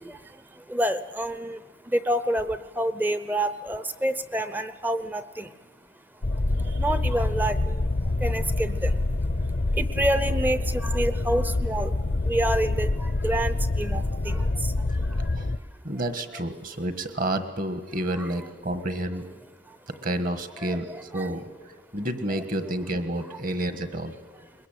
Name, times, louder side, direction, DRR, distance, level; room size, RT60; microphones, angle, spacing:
voice 1, 0.0-15.7 18.2-18.3 19.6-19.9 20.6-21.3, right 1 dB, 10° right, 13 dB, 0.7 m, -29 dB
sound 1, 6.2-15.6, left 2 dB, 45° left, 0.6 m, -26 dB
voice 2, 15.2-15.5 15.8-19.2 19.9-20.9 21.1-21.5 21.9-24.1, right 1 dB, 45° right, 10 dB, 1.5 m, -30 dB
21.5 x 21.0 x 9.0 m, 1.4 s
head